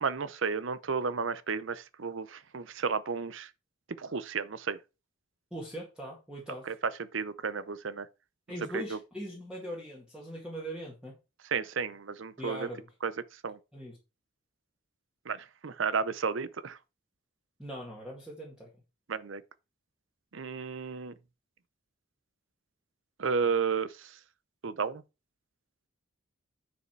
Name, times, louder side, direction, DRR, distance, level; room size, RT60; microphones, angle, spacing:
voice 1, 0.0-3.5 4.0-4.8 6.7-6.8 7.1-8.1 8.7-9.0 11.5-12.7 13.0-13.1 13.4-13.6 15.3-16.8 19.1-19.4 20.3-21.1 23.2-24.1 24.6-25.0, right 5 dB, 70° right, 0.6 m, -32 dB
voice 2, 5.5-6.7 8.5-11.1 12.4-12.9 13.7-14.0 17.6-18.7, equal, 5° right, 2.0 m, -41 dB
9.8 x 5.0 x 4.6 m
head